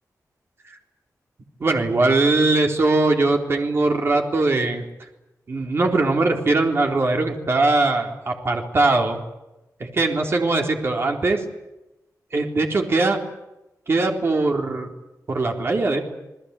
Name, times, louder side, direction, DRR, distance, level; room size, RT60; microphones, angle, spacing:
voice 1, 1.6-4.8 5.5-9.2 9.8-11.4 12.3-13.2 13.9-14.9 15.3-16.0, right 2 dB, 40° right, 3 dB, 3.9 m, -21 dB
29.0 x 20.0 x 8.4 m, 0.95 s
wide cardioid pair, 170°, 6 cm